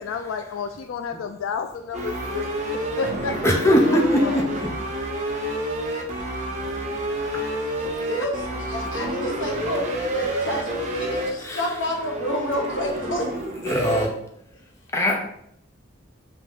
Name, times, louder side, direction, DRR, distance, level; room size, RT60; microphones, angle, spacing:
voice 1, 0.0-2.5 3.0-4.5, left 5 dB, 90° left, 7 dB, 0.3 m, -31 dB
sound 1, 1.9-14.1, right 1 dB, 35° right, 0.8 m, -29 dB
voice 2, 3.3-4.4 11.4-11.6 13.6-14.1 14.9-15.2, equal, 15° left, 0 dB, 0.6 m, -20 dB
voice 3, 7.2-9.8 10.1-13.3, equal, 70° left, 0 dB, 1.2 m, -29 dB
5.2 x 2.8 x 3.6 m, 0.73 s
head